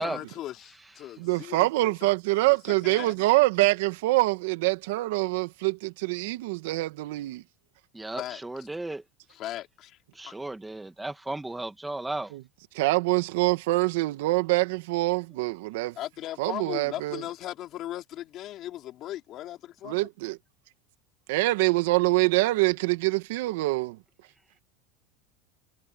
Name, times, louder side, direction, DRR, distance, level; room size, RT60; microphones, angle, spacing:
voice 1, 0.0-2.1 2.4-3.1 8.2-8.4 9.3-10.0 10.2-10.3 16.0-20.1, left 13 dB, 40° left, 3.7 m, -38 dB
voice 2, 1.2-7.4 12.3-12.4 12.7-16.0 16.4-17.2 19.8-20.4 21.3-24.0, right 20 dB, 75° right, 1.7 m, -25 dB
voice 3, 7.9-9.0 10.1-12.3, right 2 dB, 5° right, 1.5 m, -34 dB
supercardioid pair, 140°, 0 cm